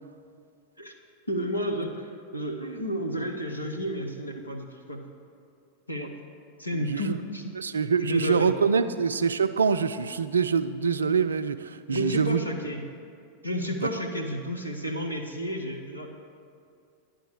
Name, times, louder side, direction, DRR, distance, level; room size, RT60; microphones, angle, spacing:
voice 1, 1.3-5.0 5.9-6.1 6.6-7.4 8.0-8.5 8.8-8.9 11.9-12.8 13.4-16.1, equal, 85° left, 2 dB, 0.8 m, -31 dB
voice 2, 6.8-7.2 7.6-12.4, right 6 dB, 70° right, 11 dB, 0.3 m, -25 dB
10.0 x 3.7 x 7.0 m, 2.3 s
figure-of-eight pair, 90°, 0 cm